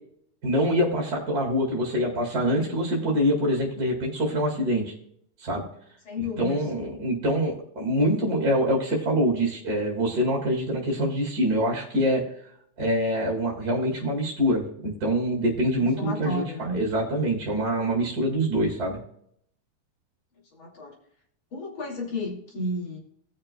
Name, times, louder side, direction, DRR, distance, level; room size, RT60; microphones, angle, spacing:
voice 1, 0.4-4.9 5.4-5.6 6.2-12.2 12.8-19.0, equal, 30° right, -1 dB, 2.6 m, -25 dB
voice 2, 6.1-6.6 15.8-16.8 20.5-20.9 21.5-23.0, left 1 dB, 40° left, -1 dB, 3.1 m, -32 dB
18.0 x 6.6 x 2.2 m, 0.69 s
omnidirectional pair, 3.5 m